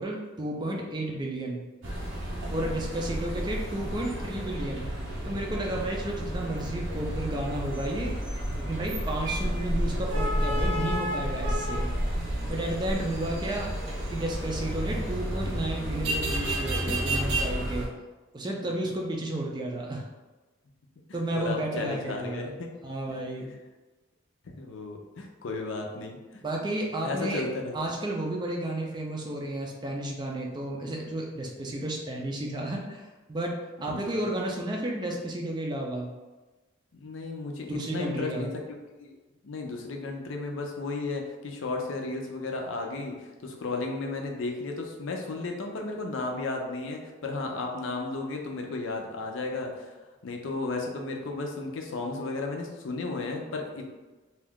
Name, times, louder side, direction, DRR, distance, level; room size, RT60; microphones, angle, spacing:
voice 1, 0.0-1.6 2.5-4.9 5.2-8.2 8.6-11.9 12.4-13.7 14.1-17.9 18.3-20.1 21.1-22.5 22.8-23.5 26.4-27.4 27.7-33.0 33.3-36.1 37.7-38.5, right 1 dB, 20° right, -1 dB, 0.4 m, -32 dB
sound 1, 1.8-17.9, equal, 75° right, 0.6 m, -31 dB
voice 2, 2.2-2.7 16.9-17.0 21.1-22.7 24.4-26.4 27.0-27.7 33.9-34.3 36.9-38.6 39.0-39.1 39.4-49.9 50.2-53.9, left 3 dB, 80° left, 2 dB, 0.5 m, -34 dB
2.6 x 2.3 x 3.5 m, 1.2 s
head